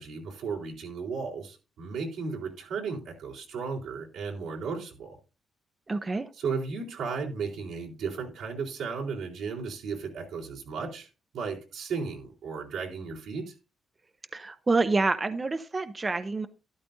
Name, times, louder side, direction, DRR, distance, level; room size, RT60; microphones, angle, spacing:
voice 1, 0.0-5.2 6.3-11.1 11.3-13.5, right 5 dB, 90° right, 3.8 m, -35 dB
voice 2, 5.9-6.3 14.3-16.5, right 3 dB, 30° right, 0.7 m, -27 dB
12.5 x 12.0 x 2.6 m
cardioid pair, 85°, 0 cm